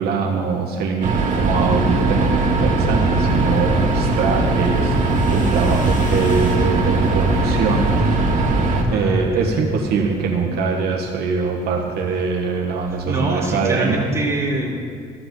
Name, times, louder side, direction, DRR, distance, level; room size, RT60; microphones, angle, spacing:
voice 1, 0.0-8.2 8.8-14.1, right 5 dB, 70° right, 0 dB, 1.4 m, -23 dB
sound 1, 1.0-8.8, right 2 dB, 45° right, 1.7 m, -19 dB
sound 2, 3.3-8.0 8.3-8.9, left 2 dB, 50° left, 1.7 m, -38 dB
voice 2, 7.9-8.4 8.9-9.3 9.6-9.7 12.9-14.7, right 2 dB, 15° right, -3 dB, 2.5 m, -24 dB
13.5 x 6.1 x 7.7 m, 2.1 s
cardioid pair, 110°, 17 cm